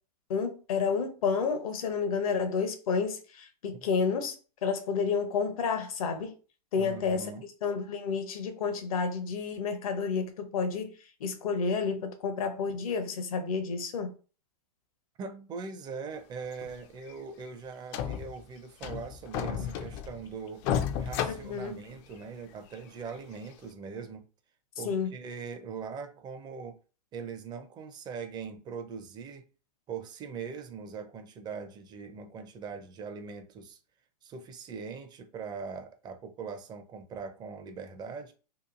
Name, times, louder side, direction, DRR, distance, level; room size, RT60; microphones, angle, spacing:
voice 1, 0.3-4.4 4.6-6.3 6.7-7.3 7.6-10.9 11.2-14.1 21.3-21.8 24.8-25.1, left 5 dB, 60° left, 0.7 m, -30 dB
voice 2, 6.8-7.4 15.2-20.6 21.0-24.2 24.8-26.8 27.1-29.5 29.9-33.8 34.2-38.3, right 5 dB, 20° right, 0.5 m, -41 dB
sound 1, 16.5-16.7 17.1-17.2 17.5-17.6 17.9-18.4 18.8-20.3 20.6-22.2 22.7-22.8 23.4-23.5, left 8 dB, 35° left, 0.4 m, -33 dB
2.8 x 2.4 x 2.5 m
hypercardioid pair, 110°, 20 cm